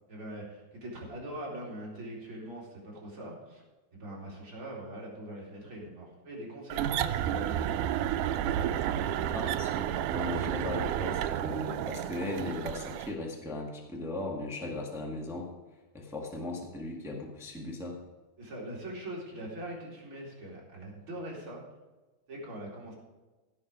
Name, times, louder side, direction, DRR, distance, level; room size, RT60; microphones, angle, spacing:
voice 1, 0.1-3.6 3.9-7.6 8.5-9.3 18.4-21.6 22.3-22.9, right 1 dB, 40° right, -4 dB, 3.5 m, -42 dB
sound 1, 6.7-13.1, right 11 dB, 90° right, 2.1 m, -31 dB
voice 2, 9.3-15.5 15.9-18.0, left 2 dB, ahead, 0 dB, 0.8 m, -37 dB
16.0 x 6.3 x 5.1 m, 1.2 s
omnidirectional pair, 3.5 m